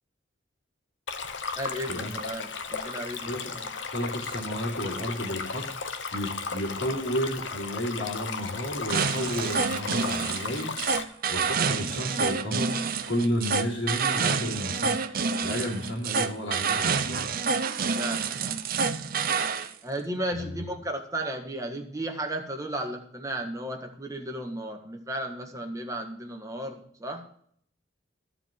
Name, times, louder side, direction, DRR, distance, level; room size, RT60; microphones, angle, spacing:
Stream, 1.1-11.0, left 5 dB, 70° left, 1.0 m, -35 dB
voice 1, 1.5-3.7 18.0-18.6 19.8-27.3, right 1 dB, 20° right, 3 dB, 1.6 m, -34 dB
voice 2, 3.2-3.6 3.9-5.6 6.1-12.7 13.1-17.4 20.3-20.6, equal, 85° left, -8 dB, 3.3 m, -32 dB
sound 1, 8.9-19.7, right 5 dB, 50° right, 0.7 m, -28 dB
13.5 x 4.8 x 7.4 m, 0.62 s
head